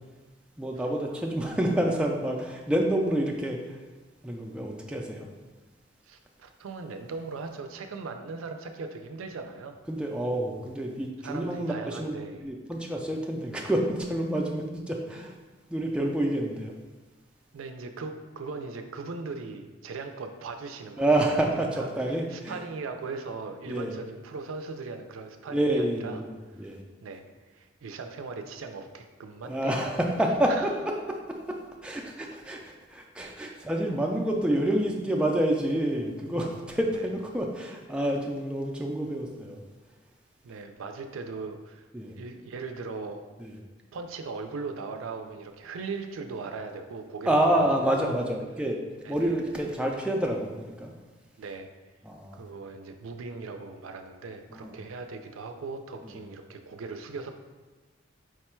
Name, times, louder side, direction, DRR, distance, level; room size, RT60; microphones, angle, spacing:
voice 1, 0.6-3.8 4.2-5.3 9.9-12.2 12.4-15.3 15.7-16.7 21.0-22.6 23.7-24.0 25.5-26.8 29.4-30.9 31.5-39.6 41.9-42.2 43.4-43.5 47.3-48.8 49.1-50.9 52.1-52.4 54.5-54.8 56.0-56.1, right 1 dB, 5° right, 0 dB, 0.3 m, -28 dB
voice 2, 6.1-9.8 11.2-12.4 17.5-21.1 21.5-26.2 26.5-26.7 27.0-29.9 30.5-30.7 33.5-33.6 36.9-37.1 40.4-41.9 42.1-43.2 43.9-48.2 49.0-49.3 51.4-51.7 52.3-57.3, right 4 dB, 90° right, 6 dB, 0.4 m, -39 dB
4.7 x 2.2 x 4.3 m, 1.3 s
head